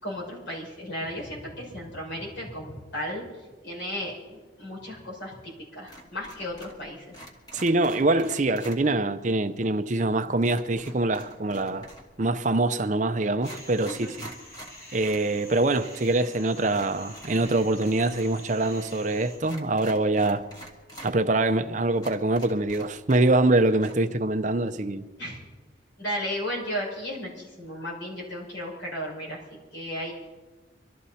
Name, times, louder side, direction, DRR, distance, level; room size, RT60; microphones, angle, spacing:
voice 1, 0.0-3.2 3.6-7.1 13.8-14.1 25.2-25.4 26.0-30.1, equal, 75° left, 5.9 m, -35 dB
sound 1, 5.9-6.8 7.1-8.8 10.4-12.2 12.9-13.0 13.3-15.3 15.6-15.7 16.7-18.4 18.6-18.7 19.4-21.1 21.6-21.7 22.0-23.5 23.7-23.9, right 1 dB, 20° left, 1.9 m, -46 dB
voice 2, 7.5-11.9 12.2-14.2 14.9-20.4 21.0-25.0, right 2 dB, 40° right, 0.6 m, -24 dB
sound 2, 13.4-19.4, left 1 dB, 50° left, 6.1 m, -47 dB
24.5 x 13.0 x 4.2 m
head